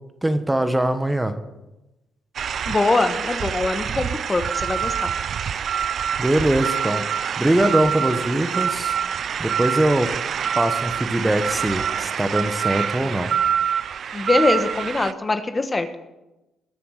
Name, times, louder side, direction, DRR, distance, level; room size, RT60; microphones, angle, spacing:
voice 1, 0.2-1.3 6.2-7.0 7.4-8.9 9.4-10.1 10.5-13.3, right 1 dB, 10° right, 9 dB, 1.2 m, -22 dB
sound 1, 2.4-15.1, right 8 dB, 55° right, 0.4 m, -26 dB
voice 2, 2.7-5.1 14.1-15.9, left 3 dB, 25° left, 9 dB, 1.2 m, -22 dB
20.5 x 7.0 x 6.5 m, 1.0 s
cardioid pair, 90°, 0 cm